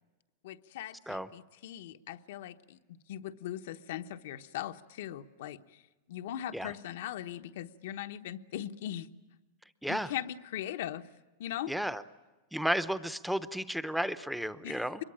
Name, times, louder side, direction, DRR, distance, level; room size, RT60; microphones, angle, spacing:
voice 1, 0.4-2.8 3.1-5.6 6.1-9.1 9.9-11.1 11.4-11.7 14.6-15.0, left 11 dB, 70° left, 8 dB, 1.0 m, -39 dB
voice 2, 11.7-12.0 12.5-15.0, equal, ahead, 13 dB, 0.7 m, -33 dB
24.5 x 22.5 x 8.7 m, 1.2 s
supercardioid pair, 155°, 0 cm